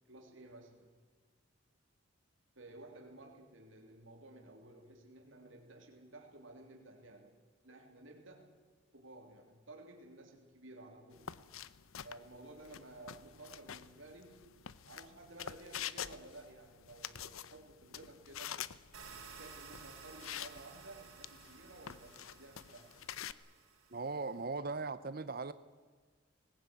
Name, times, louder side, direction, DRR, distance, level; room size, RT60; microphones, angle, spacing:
voice 1, 0.1-1.0 2.5-7.3 7.6-8.6 8.9-11.4 12.0-14.5 14.8-18.6 19.1-22.9 24.3-24.6, right 2 dB, 70° right, 3.2 m, -54 dB
sound 1, 11.1-23.3, left 9 dB, 85° left, 0.8 m, -47 dB
sound 2, 18.9-24.4, right 5 dB, 85° right, 5.7 m, -55 dB
voice 2, 23.9-25.5, right 3 dB, 45° right, 0.7 m, -39 dB
20.0 x 19.0 x 9.2 m
head